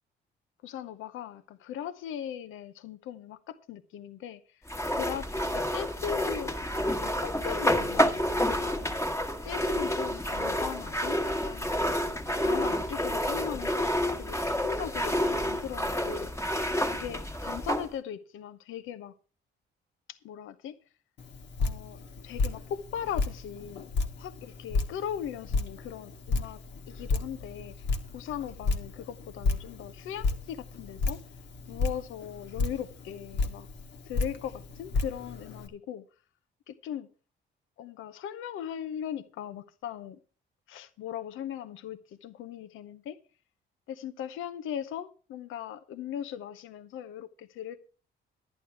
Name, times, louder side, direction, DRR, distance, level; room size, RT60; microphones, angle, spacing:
voice 1, 0.6-4.7 5.0-8.9 9.4-11.7 12.4-13.9 14.2-16.3 16.9-19.1 20.1-20.8 21.6-23.9 24.2-27.7 28.1-31.2 31.7-33.7 34.0-36.0 36.7-37.1 37.8-40.2 40.7-43.2 43.9-47.8, left 9 dB, 85° left, 0.8 m, -39 dB
sound 1, 4.7-17.9, equal, 15° left, 1.4 m, -29 dB
Drip, 21.2-35.7, left 3 dB, 65° left, 1.5 m, -33 dB
11.0 x 9.7 x 4.6 m
cardioid pair, 90°, 20 cm